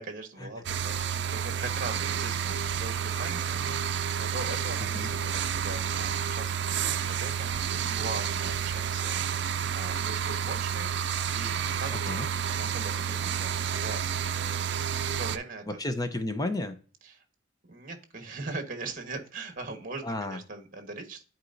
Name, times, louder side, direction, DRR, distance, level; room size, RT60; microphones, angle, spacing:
voice 1, 0.0-14.0 14.4-14.7 15.1-15.8 17.1-17.2 17.6-21.2, right 3 dB, 45° right, 6 dB, 1.3 m, -41 dB
sound 1, 0.6-15.4, right 8 dB, 60° right, 0.5 m, -30 dB
voice 2, 11.9-12.3 15.7-16.8 20.0-20.4, left 2 dB, 20° left, 8 dB, 0.7 m, -32 dB
11.0 x 4.5 x 2.6 m, 0.38 s
head